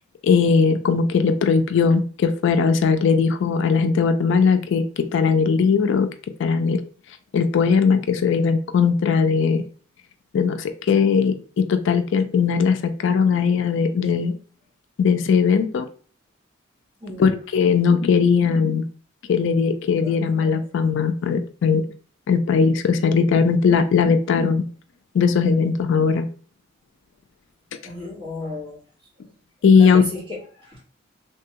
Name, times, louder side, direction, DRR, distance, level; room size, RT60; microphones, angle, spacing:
voice 1, 0.2-6.1 6.4-6.8 7.3-9.6 10.3-14.4 15.0-15.9 17.2-18.9 19.3-21.8 22.3-24.7 25.1-26.3 29.6-30.0, left 5 dB, 60° left, 8 dB, 0.3 m, -19 dB
voice 2, 20.0-20.6 27.8-28.8 29.8-30.8, left 2 dB, 25° right, -5 dB, 1.3 m, -34 dB
3.3 x 2.2 x 2.8 m, 0.40 s
head